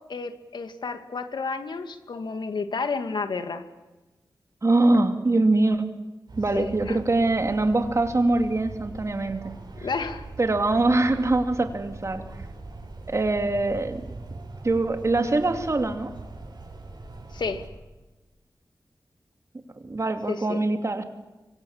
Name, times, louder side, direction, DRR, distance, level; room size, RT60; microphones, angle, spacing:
voice 1, 0.0-3.6 6.5-7.0 9.8-10.2 17.3-17.7 20.3-20.6, left 4 dB, 80° left, 8 dB, 2.2 m, -31 dB
voice 2, 4.6-5.9 6.4-9.5 10.4-12.2 13.1-14.0 14.6-16.1 19.8-21.0, right 2 dB, 40° right, 6 dB, 2.8 m, -23 dB
sound 1, 6.3-17.7, right 3 dB, 70° right, 7.0 m, -41 dB
25.5 x 25.0 x 7.4 m, 1.1 s
wide cardioid pair, 95°, 8 cm